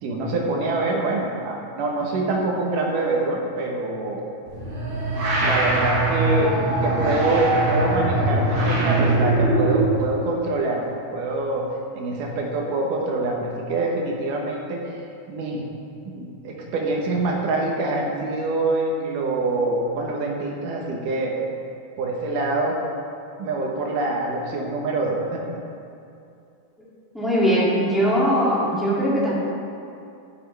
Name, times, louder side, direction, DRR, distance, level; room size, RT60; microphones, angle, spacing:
voice 1, 0.0-4.2 5.4-6.5 6.8-11.7 11.9-14.9 15.3-15.6 16.1-21.3 22.0-22.8 23.4-25.4, right 2 dB, 90° right, -1 dB, 2.9 m, -25 dB
sound 1, 4.5-10.0, right 2 dB, 60° right, 3.3 m, -21 dB
voice 2, 27.1-29.3, equal, ahead, -9 dB, 1.9 m, -20 dB
10.5 x 10.5 x 3.4 m, 2.6 s
omnidirectional pair, 3.6 m